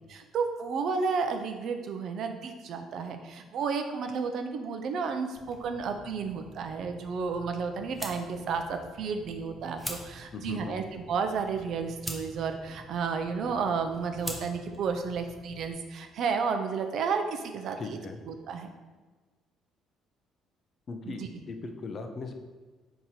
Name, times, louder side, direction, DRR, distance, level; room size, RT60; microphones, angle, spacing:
voice 1, 0.1-18.0 18.3-18.7 21.1-21.2, right 5 dB, 65° right, 6 dB, 0.5 m, -32 dB
sound 1, 5.4-15.7, equal, 5° left, 0.7 m, -45 dB
voice 2, 10.3-10.8 17.8-18.2 20.9-22.3, left 3 dB, 45° left, 6 dB, 0.5 m, -38 dB
3.8 x 2.9 x 4.3 m, 1.3 s
cardioid pair, 90°, 0 cm